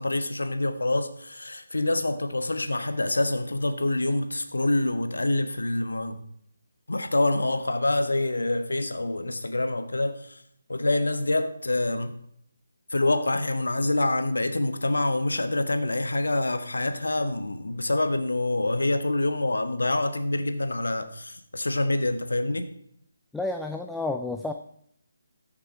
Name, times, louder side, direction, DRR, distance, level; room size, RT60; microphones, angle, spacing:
voice 1, 0.0-6.2 6.9-10.4 10.7-12.1 12.9-22.6, left 2 dB, 80° left, 1.3 m, -26 dB
voice 2, 23.3-24.5, left 2 dB, 5° left, 0.5 m, -30 dB
13.5 x 6.7 x 4.4 m
figure-of-eight pair, 150°, 0 cm